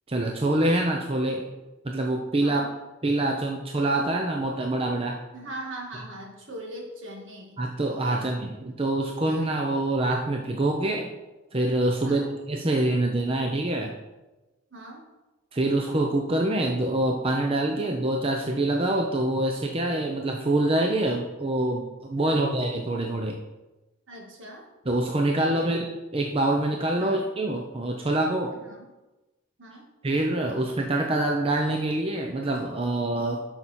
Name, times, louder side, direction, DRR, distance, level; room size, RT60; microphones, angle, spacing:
voice 1, 0.1-1.5 1.8-2.6 3.0-5.2 7.6-11.1 11.5-12.2 12.5-13.9 15.5-23.4 24.9-28.5 30.0-33.4, right 1 dB, 30° right, 2 dB, 0.7 m, -25 dB
voice 2, 5.3-7.6 8.1-8.3 12.0-12.3 14.7-15.0 22.2-22.4 24.1-24.7 25.6-25.8 27.0-27.2 28.6-28.9 29.6-29.9, right 1 dB, 70° right, 0 dB, 2.1 m, -41 dB
11.0 x 5.9 x 4.3 m, 1.1 s
head